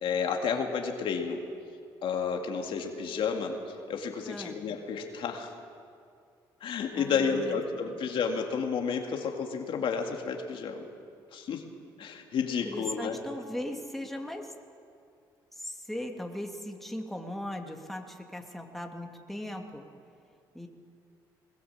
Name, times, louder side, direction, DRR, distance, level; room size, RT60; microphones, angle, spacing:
voice 1, 0.0-1.4 2.0-5.5 6.6-10.8 11.3-11.7 12.0-13.2, left 6 dB, 70° left, 3 dB, 2.3 m, -31 dB
voice 2, 4.3-4.6 6.9-7.6 7.9-8.0 12.6-14.5 15.5-19.8 20.5-20.7, left 1 dB, ahead, 2 dB, 2.8 m, -38 dB
21.0 x 20.0 x 7.3 m, 2.3 s
supercardioid pair, 65°, 9 cm